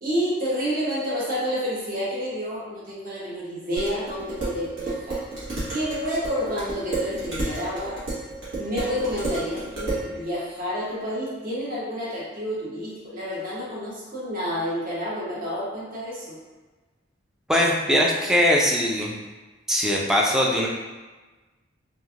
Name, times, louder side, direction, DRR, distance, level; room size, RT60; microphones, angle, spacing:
voice 1, 0.0-5.2 5.7-8.0 8.5-16.4, equal, 45° right, -7 dB, 0.8 m, -29 dB
Dishes pots and pans, 3.8-10.1, right 2 dB, 75° right, 1.2 m, -31 dB
voice 2, 17.5-19.2 19.7-20.7, equal, 5° right, -2 dB, 0.3 m, -21 dB
3.1 x 2.4 x 2.4 m, 1.2 s
head